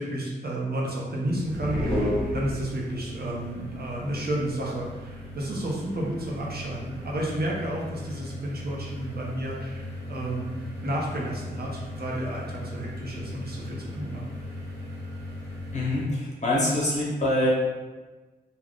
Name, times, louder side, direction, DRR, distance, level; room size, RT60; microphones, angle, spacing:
voice 1, 0.0-10.6 10.8-14.2, right 1 dB, 55° right, -3 dB, 0.7 m, -31 dB
sound 1, 1.2-16.1, left 1 dB, 75° right, 1.1 m, -39 dB
sound 2, 1.5-3.1, left 1 dB, 5° right, 0.8 m, -28 dB
voice 2, 15.7-17.5, left 1 dB, 40° left, -5 dB, 1.1 m, -25 dB
2.4 x 2.2 x 3.5 m, 1.2 s
cardioid pair, 45°, 19 cm